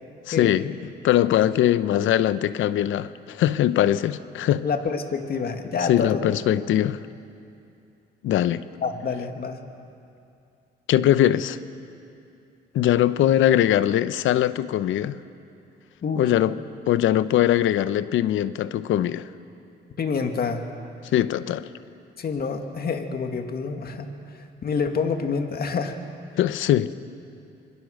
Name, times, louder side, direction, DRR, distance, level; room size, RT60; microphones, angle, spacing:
voice 1, 0.3-0.8 1.0-4.6 5.9-7.0 8.2-8.6 10.9-11.6 12.7-15.2 16.2-16.6 16.9-19.3 21.1-21.7 26.4-26.9, left 12 dB, 80° left, 0.8 m, -21 dB
voice 2, 4.6-6.3 8.8-9.6 16.0-16.3 20.0-20.6 22.2-26.0, left 5 dB, 50° left, 2.0 m, -27 dB
26.5 x 21.5 x 6.5 m
cardioid pair, 90°, 20 cm